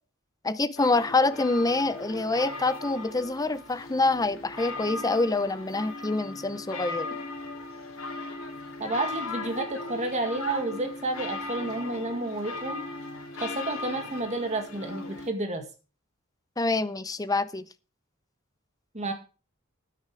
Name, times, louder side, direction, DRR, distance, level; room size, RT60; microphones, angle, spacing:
voice 1, 0.4-7.1 16.6-17.6, left 3 dB, 20° left, 0.6 m, -26 dB
sound 1, 0.8-15.3, left 2 dB, 85° left, 2.6 m, -38 dB
voice 2, 8.8-12.8 13.4-15.7 18.9-19.1, right 2 dB, 35° right, 1.9 m, -30 dB
9.9 x 9.4 x 4.8 m
head